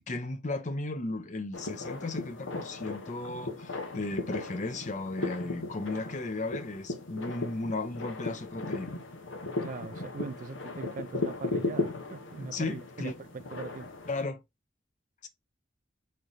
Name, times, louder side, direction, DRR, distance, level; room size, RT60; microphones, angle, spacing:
voice 1, 0.0-9.0 12.5-13.1 14.1-14.4 15.2-15.3, left 2 dB, 40° left, 0.6 m, -35 dB
sound 1, 1.5-14.2, left 2 dB, 85° left, 1.0 m, -37 dB
voice 2, 9.6-13.9, right 4 dB, 40° right, 0.3 m, -41 dB
3.8 x 3.2 x 4.1 m
head